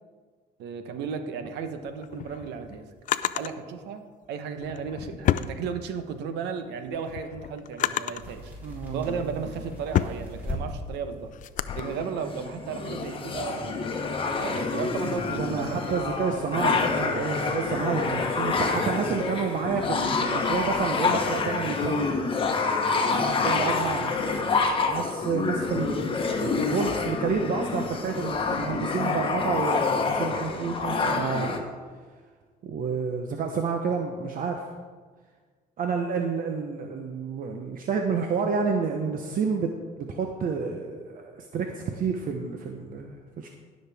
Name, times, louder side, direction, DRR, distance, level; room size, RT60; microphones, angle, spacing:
voice 1, 0.6-2.9 3.3-4.0 4.3-8.5 8.9-11.3 11.8-13.9 14.4-16.0 16.4-16.8, right 6 dB, 85° right, 8 dB, 1.1 m, -34 dB
Drawer open or close, 1.9-3.5 4.6-6.2 6.6-8.3 9.0-11.8, left 11 dB, 50° left, 0.4 m, -30 dB
sound 1, 8.2-18.4, left 1 dB, 10° right, 3.8 m, -43 dB
voice 2, 8.6-9.2 15.4-22.1 23.1-31.6 32.6-34.6 35.8-39.7 40.0-43.5, right 5 dB, 55° right, 3 dB, 0.9 m, -30 dB
sound 2, 11.7-31.6, left 4 dB, 30° left, 1.2 m, -27 dB
19.5 x 6.5 x 3.5 m, 1.5 s
cardioid pair, 110°, 17 cm